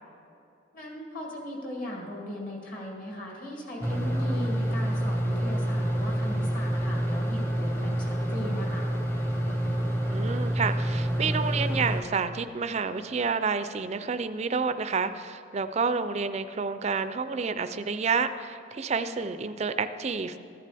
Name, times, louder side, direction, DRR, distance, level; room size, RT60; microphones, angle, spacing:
voice 1, 0.7-8.9, left 1 dB, 45° left, -1 dB, 2.2 m, -38 dB
sound 1, 3.8-12.0, right 1 dB, 10° left, 0.8 m, -28 dB
voice 2, 10.1-20.4, right 5 dB, 35° right, 11 dB, 0.4 m, -29 dB
14.0 x 10.5 x 3.4 m, 2.7 s
head